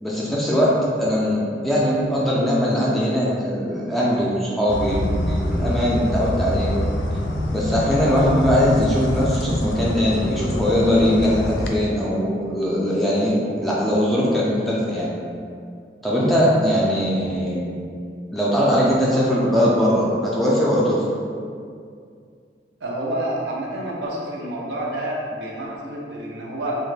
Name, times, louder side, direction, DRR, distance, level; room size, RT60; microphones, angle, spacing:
voice 1, 0.0-5.0 5.3-6.7 7.5-15.1 16.0-17.6 18.3-21.0, equal, ahead, -6 dB, 0.3 m, -20 dB
sound 1, 4.7-11.7, left 1 dB, 85° left, 0.3 m, -25 dB
voice 2, 22.8-26.8, right 1 dB, 90° right, -3 dB, 0.5 m, -28 dB
2.2 x 2.1 x 3.1 m, 2.3 s
head